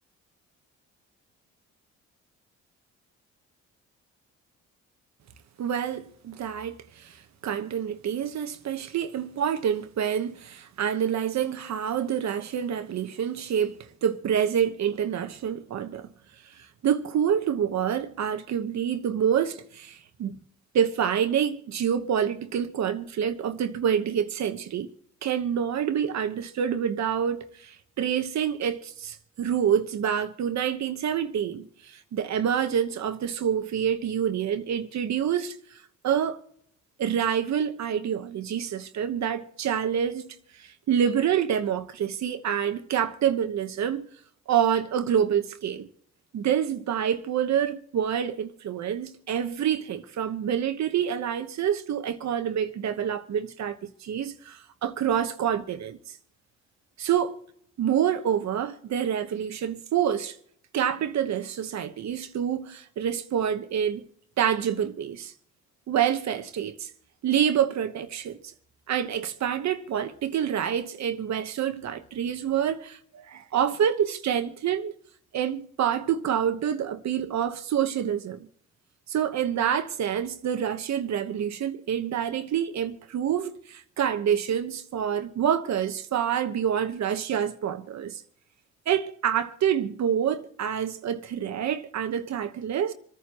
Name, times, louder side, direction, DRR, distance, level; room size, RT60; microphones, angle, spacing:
voice 1, 5.6-7.2 7.4-16.1 16.8-20.4 20.7-24.9 25.2-35.8 36.0-36.4 37.0-44.1 44.5-45.9 46.3-56.0 57.0-57.4 57.8-60.4 60.7-64.0 64.4-65.3 65.9-66.9 67.2-68.4 68.9-74.9 75.3-78.5 79.1-88.2 88.9-92.9, right 9 dB, 65° right, 1.2 m, -27 dB
27.0 x 9.7 x 3.0 m
cardioid pair, 90°, 30 cm